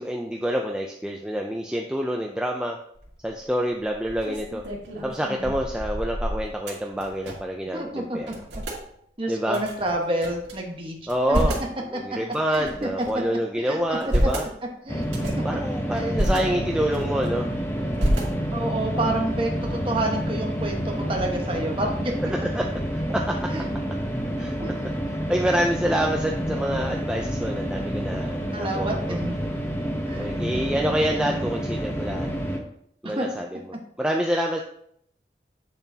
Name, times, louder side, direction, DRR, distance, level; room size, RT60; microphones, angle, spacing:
voice 1, 0.0-2.8 3.2-4.6 5.0-8.3 9.3-9.6 11.1-11.6 11.9-14.5 15.3-17.5 19.0-19.2 22.5-22.6 23.1-23.4 24.4-24.5 25.3-29.3 30.2-32.3 33.0-33.6 34.0-34.6, equal, 5° right, 0 dB, 0.4 m, -27 dB
sound 1, 2.9-3.3 3.8-7.6 7.9-8.0 8.2-8.8 9.5-10.5 11.0-11.7 12.3-13.3 13.8-14.5 15.0-15.5 16.0-16.4 16.9-17.5 18.0-18.7, equal, 80° right, 2.2 m, -28 dB
voice 2, 7.7-8.3 9.2-11.0 11.3-11.4 12.1-12.2 12.5-13.1 13.6-14.0 14.8-15.3 15.9-16.2 18.5-22.1 23.5-23.7 24.6-24.7 28.5-29.4 30.1-30.3 33.0-33.3, right 1 dB, 30° right, 1 dB, 1.3 m, -29 dB
sound 2, 14.9-32.6, equal, 15° left, 0.8 m, -29 dB
8.1 x 7.0 x 2.8 m, 0.70 s
head